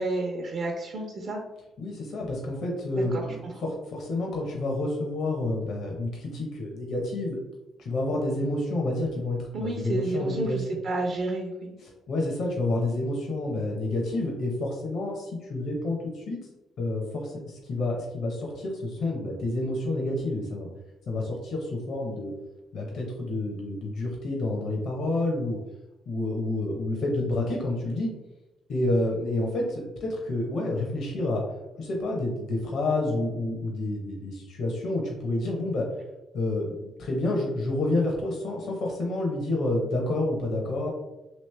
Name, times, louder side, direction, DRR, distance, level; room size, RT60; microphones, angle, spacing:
voice 1, 0.0-1.4 3.0-3.5 9.5-11.7, right 2 dB, 60° right, 0 dB, 0.6 m, -30 dB
voice 2, 1.8-7.4 7.8-10.8 11.8-16.4 16.8-20.7 21.1-22.3 22.7-25.6 26.1-28.1 28.7-31.4 31.8-35.9 36.3-40.9, left 2 dB, 70° left, 0 dB, 0.8 m, -29 dB
3.1 x 2.9 x 3.2 m, 0.97 s
cardioid pair, 90°, 0 cm